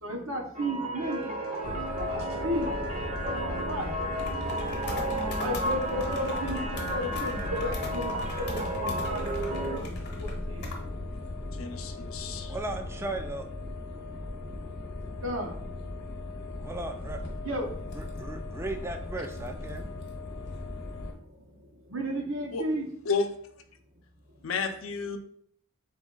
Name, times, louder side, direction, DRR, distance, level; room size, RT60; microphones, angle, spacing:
voice 1, 0.0-1.4 1.6-1.8 2.1-2.7 3.3-3.9 5.4-9.9 10.2-10.7 15.2-15.5 17.4-17.7 21.9-22.9, equal, 75° right, 1 dB, 1.0 m, -33 dB
sound 1, 0.6-9.8, right 1 dB, 35° right, 0.7 m, -33 dB
sound 2, 1.0-7.9, right 3 dB, 50° right, 1.3 m, -48 dB
sound 3, 1.6-21.1, left 2 dB, 55° left, 0.8 m, -37 dB
voice 2, 11.6-12.6 22.5-22.6 23.1-23.3 24.4-25.2, left 4 dB, 80° left, 7 dB, 0.5 m, -31 dB
voice 3, 12.5-13.5 16.6-17.2 17.9-19.9, right 2 dB, 15° right, 5 dB, 0.4 m, -36 dB
4.0 x 3.1 x 3.7 m, 0.64 s
head